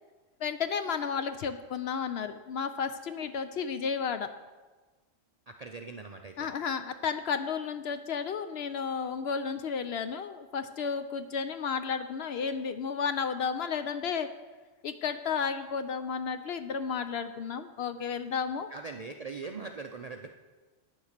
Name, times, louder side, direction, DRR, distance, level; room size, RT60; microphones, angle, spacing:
voice 1, 0.4-4.3 6.4-14.3 14.8-18.7, left 6 dB, 65° left, 10 dB, 0.7 m, -32 dB
voice 2, 5.5-6.5 18.7-20.3, right 4 dB, 55° right, 4 dB, 0.4 m, -41 dB
9.2 x 7.1 x 6.5 m, 1.3 s
omnidirectional pair, 1.3 m